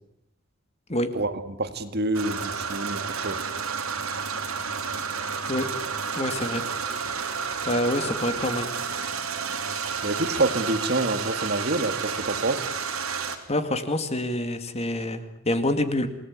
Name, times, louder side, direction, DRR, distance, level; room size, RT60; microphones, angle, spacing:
voice 1, 1.1-3.4 10.0-12.6, right 2 dB, 50° right, 10 dB, 2.0 m, -27 dB
sound 1, 2.1-13.4, right 6 dB, 80° right, 3.5 m, -31 dB
voice 2, 6.2-6.6 7.7-8.7 13.5-16.1, left 1 dB, 30° left, 9 dB, 2.2 m, -26 dB
28.0 x 19.0 x 9.6 m, 0.79 s
head